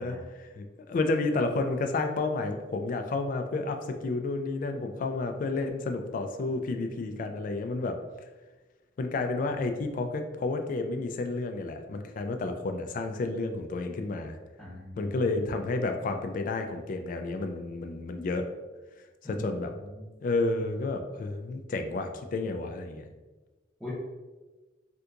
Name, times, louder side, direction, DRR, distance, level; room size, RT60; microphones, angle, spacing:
voice 1, 0.0-8.0 9.0-14.4 15.0-18.5 19.2-19.7 20.2-23.1, left 3 dB, 50° left, 6 dB, 0.3 m, -31 dB
voice 2, 14.6-15.5 19.2-20.1 23.8-23.9, left 1 dB, ahead, -12 dB, 0.7 m, -41 dB
3.4 x 2.8 x 2.4 m, 1.2 s
head